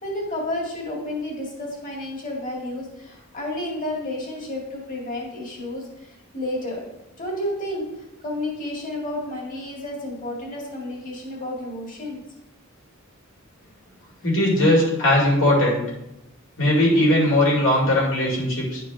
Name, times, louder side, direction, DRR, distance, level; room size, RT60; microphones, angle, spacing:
voice 1, 0.0-6.9 7.2-7.9 8.2-12.2, left 1 dB, 40° left, -3 dB, 2.2 m, -31 dB
voice 2, 14.2-15.8 16.6-18.8, left 1 dB, 65° left, -4 dB, 2.4 m, -19 dB
10.5 x 4.6 x 3.5 m, 0.89 s
head